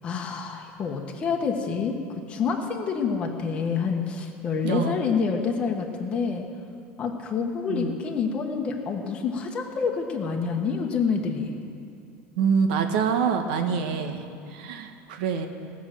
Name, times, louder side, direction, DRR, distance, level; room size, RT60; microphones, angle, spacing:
voice 1, 0.0-2.0 2.3-6.4 7.0-11.6, left 5 dB, 25° left, 1 dB, 1.1 m, -27 dB
voice 2, 4.6-5.0 7.7-7.9 12.4-14.2 14.5-15.5, right 6 dB, 85° right, 5 dB, 1.3 m, -25 dB
18.0 x 6.2 x 7.5 m, 2.5 s
cardioid pair, 175°, 5 cm